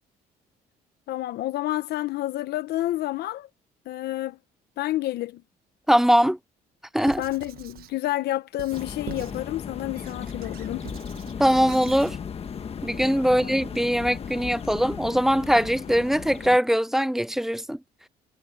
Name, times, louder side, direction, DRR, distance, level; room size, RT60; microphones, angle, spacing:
voice 1, 1.1-3.5 3.8-4.4 4.8-5.4 7.2-10.9 13.3-13.4, left 15 dB, 70° left, 1.1 m, -29 dB
voice 2, 5.9-6.4 6.9-7.2 11.4-12.2 12.8-17.8, equal, ahead, 0.3 m, -21 dB
Squeak / Writing, 7.0-8.0 8.6-9.5 9.9-12.2, right 12 dB, 65° right, 1.2 m, -43 dB
sound 1, 8.7-16.6, left 7 dB, 35° left, 1.4 m, -36 dB
cardioid pair, 110°, 17 cm